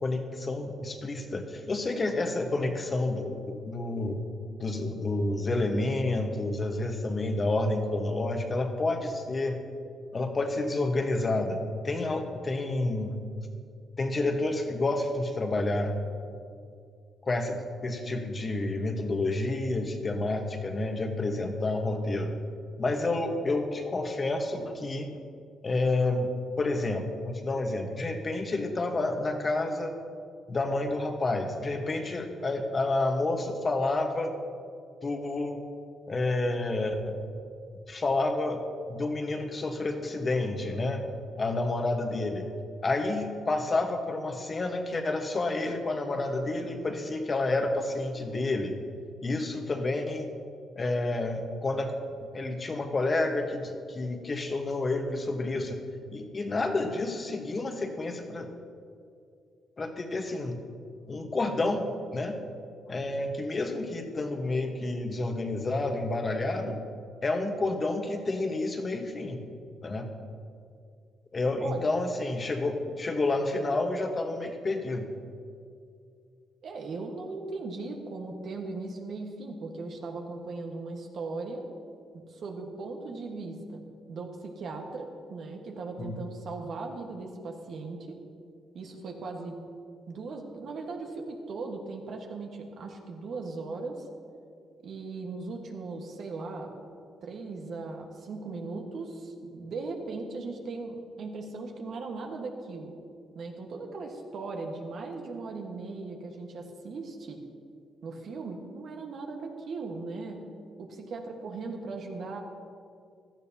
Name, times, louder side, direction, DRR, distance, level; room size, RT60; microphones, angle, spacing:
voice 1, 0.0-4.2 4.6-9.6 10.1-13.1 14.0-16.0 17.2-22.4 22.8-25.1 25.6-29.9 30.5-34.3 35.0-35.6 36.1-37.2 37.9-38.6 38.9-41.0 41.4-42.5 42.8-48.8 49.2-50.3 50.8-51.9 52.2-55.8 56.1-58.5 59.8-60.6 61.1-62.4 62.9-66.8 67.2-69.5 69.8-70.1 71.3-75.1 86.0-86.2, left 2 dB, 35° left, 4 dB, 1.3 m, -29 dB
voice 2, 76.6-81.7 82.1-88.2 88.7-89.6 90.1-94.1 94.8-96.7 97.2-102.9 103.3-107.4 108.0-110.5 110.8-112.4, right 3 dB, 65° right, 2 dB, 1.5 m, -38 dB
16.5 x 12.0 x 2.9 m, 2.3 s
cardioid pair, 90°, 0 cm